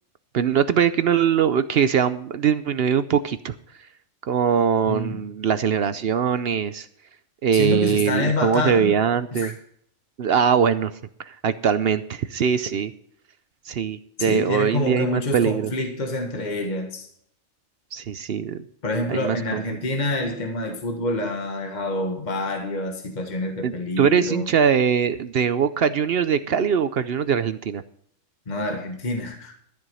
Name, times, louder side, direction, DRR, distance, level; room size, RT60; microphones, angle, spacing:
voice 1, 0.3-3.5 4.2-6.9 7.4-9.5 10.2-10.9 11.2-12.9 13.7-15.7 17.9-18.6 19.1-19.8 23.6-27.8, right 7 dB, 60° right, 13 dB, 0.7 m, -22 dB
voice 2, 4.9-5.2 7.5-9.0 9.3-9.5 14.2-17.1 18.8-24.5 28.5-29.6, left 2 dB, 35° left, 3 dB, 1.7 m, -27 dB
13.0 x 7.9 x 5.5 m, 0.65 s
omnidirectional pair, 1.4 m